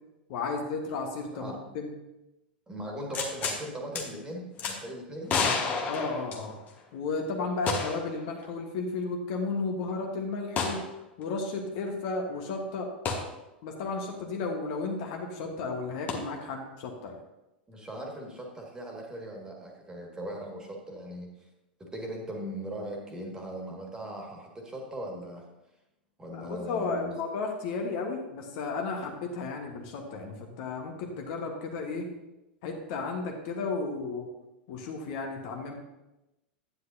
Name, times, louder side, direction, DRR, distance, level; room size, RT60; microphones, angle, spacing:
voice 1, 0.3-1.9 5.9-6.5 6.9-10.8 11.2-12.9 13.6-17.2 26.3-32.1 32.6-34.3 34.7-35.7, left 3 dB, 50° left, 2 dB, 1.4 m, -33 dB
voice 2, 2.7-5.4 17.7-21.3 21.8-25.5 26.2-27.2, right 1 dB, 15° right, 0 dB, 2.1 m, -39 dB
sound 1, 3.1-3.6 4.0-4.1 4.6-4.8 5.3-6.8 7.7-8.1 8.4-8.5 10.6-10.8 13.1-13.2 16.1-16.2, left 5 dB, 30° left, 1.5 m, -29 dB
9.9 x 9.6 x 2.8 m, 0.96 s
figure-of-eight pair, 85°, 5 cm